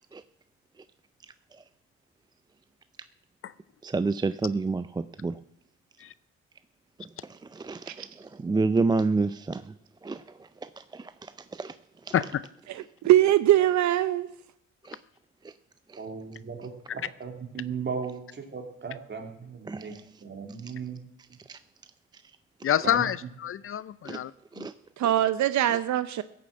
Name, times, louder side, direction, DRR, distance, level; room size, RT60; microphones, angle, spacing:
voice 1, 3.8-5.4 7.0-9.8 10.0-11.8 12.0-12.1 12.8-12.9 14.8-15.0 15.4-15.5 15.9-16.0 19.7-20.0 20.6-20.7 21.2-21.6 22.1-22.2 22.6-22.7 24.0-24.2 24.5-24.7 25.0-25.1 25.7-25.8, right 3 dB, 15° right, 0.4 m, -30 dB
voice 2, 12.7-14.3 25.0-26.2, right 13 dB, 65° right, 0.6 m, -22 dB
voice 3, 16.0-19.9 20.2-21.0 22.8-23.0, right 5 dB, 35° right, 2.7 m, -37 dB
voice 4, 22.6-24.3 24.6-24.7, left 10 dB, 45° left, 0.5 m, -27 dB
16.0 x 7.0 x 7.6 m
cardioid pair, 90°, 30 cm